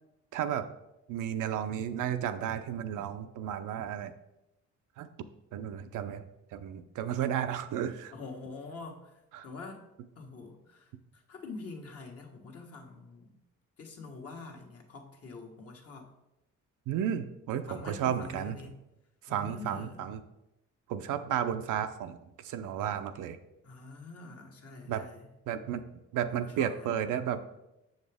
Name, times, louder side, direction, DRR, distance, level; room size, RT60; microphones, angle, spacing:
voice 1, 0.3-0.7 1.1-4.1 5.0-5.1 5.5-6.3 6.5-8.1 9.3-9.5 16.9-18.6 19.2-20.2 20.9-23.4 24.9-25.0 25.5-25.8 26.1-27.4, right 9 dB, 85° right, 9 dB, 0.6 m, -33 dB
voice 2, 8.1-9.2 9.4-9.8 10.1-13.3 13.8-16.1 17.7-18.8 19.3-20.1 23.6-25.3 26.3-26.9, left 3 dB, 50° left, 2 dB, 1.4 m, -45 dB
6.8 x 6.5 x 3.4 m, 0.91 s
cardioid pair, 90°, 30 cm